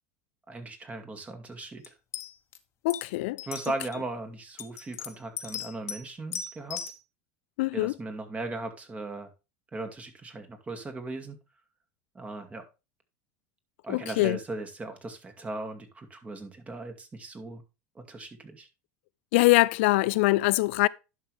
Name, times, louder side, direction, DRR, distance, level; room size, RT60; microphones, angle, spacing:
voice 1, 0.5-1.9 3.4-6.8 7.7-9.3 9.7-11.4 12.1-12.6 13.8-17.6 17.9-18.7, right 2 dB, 20° right, 2.5 m, -38 dB
sound 1, 1.8-1.9 2.1-2.6 2.9-3.0 3.4-4.0 4.6-6.0 6.3-7.0, left 8 dB, 45° left, 1.4 m, -37 dB
voice 2, 2.8-3.4 7.6-7.9 13.9-14.4 19.3-20.9, left 21 dB, 75° left, 0.4 m, -23 dB
11.0 x 6.1 x 3.4 m
supercardioid pair, 100°, 7 cm